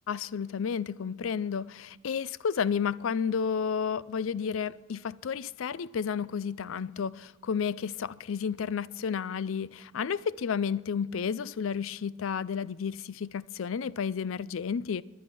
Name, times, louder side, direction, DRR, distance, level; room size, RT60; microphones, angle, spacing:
voice 1, 0.1-15.0, left 6 dB, 80° left, 0.4 m, -31 dB
19.0 x 10.5 x 5.4 m
head